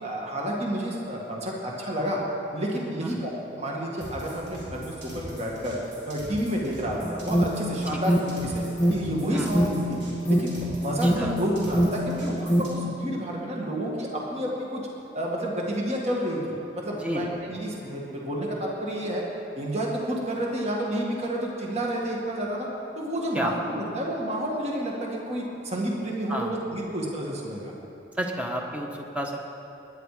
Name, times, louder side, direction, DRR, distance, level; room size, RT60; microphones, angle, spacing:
voice 1, 0.0-2.2 2.5-5.8 6.1-8.6 8.9-10.0 10.2-14.8 15.1-19.2 19.6-22.7 23.0-27.7, right 1 dB, 35° right, -2 dB, 2.0 m, -30 dB
sound 1, 4.0-12.7, equal, 65° right, 4.3 m, -42 dB
Alarm, 7.0-12.9, right 1 dB, 15° left, 0.7 m, -25 dB
voice 2, 7.9-8.2 9.3-9.5 11.0-11.4 16.9-17.3 23.3-23.5 26.3-26.5 28.2-29.4, equal, 5° right, 1 dB, 1.3 m, -31 dB
21.0 x 10.5 x 5.0 m, 2.9 s
head